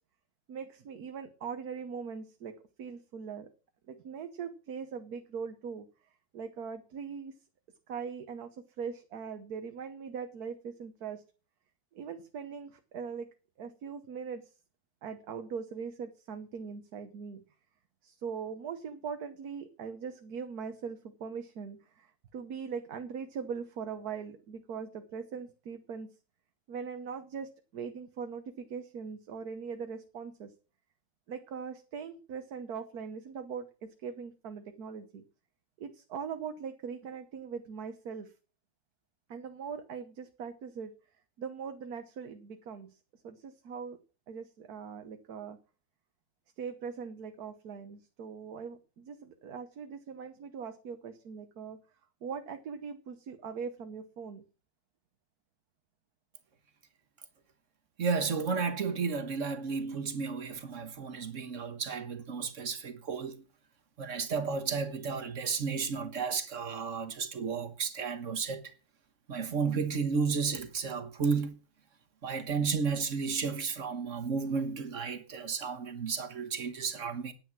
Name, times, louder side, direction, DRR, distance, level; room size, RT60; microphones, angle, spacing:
voice 1, 0.5-2.5 2.8-3.5 3.9-5.9 6.3-7.3 7.9-8.5 8.8-11.2 11.9-13.3 13.6-14.5 15.0-17.4 18.0-26.1 26.7-30.5 31.3-35.2 35.8-38.3 39.3-40.9 41.4-43.0 43.2-44.0 44.3-45.6 46.6-51.8 52.2-54.4, right 6 dB, 85° right, 1.6 m, -41 dB
voice 2, 58.0-63.4 64.0-68.7 69.3-71.5 72.2-77.3, right 5 dB, 55° right, 1.7 m, -33 dB
10.0 x 9.2 x 6.0 m
omnidirectional pair, 1.6 m